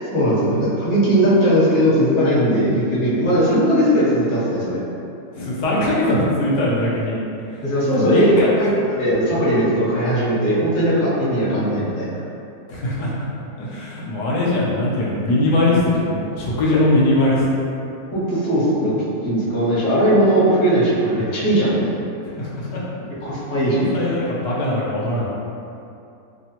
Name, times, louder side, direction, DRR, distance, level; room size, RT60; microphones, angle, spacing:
voice 1, 0.1-4.8 7.6-8.3 8.6-8.7 8.9-12.1 16.7-16.8 18.1-21.9 23.2-24.0, equal, 40° left, -10 dB, 0.8 m, -18 dB
voice 2, 5.3-7.2 8.0-8.5 12.7-13.1 13.6-17.5 22.4-22.8 23.6-25.3, left 1 dB, 80° left, -5 dB, 1.2 m, -21 dB
3.0 x 2.1 x 2.8 m, 2.6 s
omnidirectional pair, 1.8 m